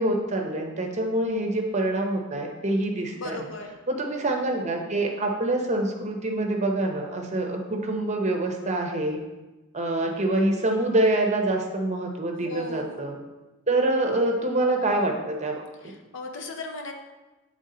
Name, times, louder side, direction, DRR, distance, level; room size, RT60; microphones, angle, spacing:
voice 1, 0.0-3.4 3.9-9.2 9.7-13.2 13.7-15.6, right 1 dB, 35° right, 1 dB, 0.8 m, -26 dB
voice 2, 3.1-3.8 12.4-13.0 15.8-16.9, left 2 dB, 65° left, 3 dB, 0.7 m, -37 dB
8.0 x 3.6 x 3.8 m, 1.1 s
head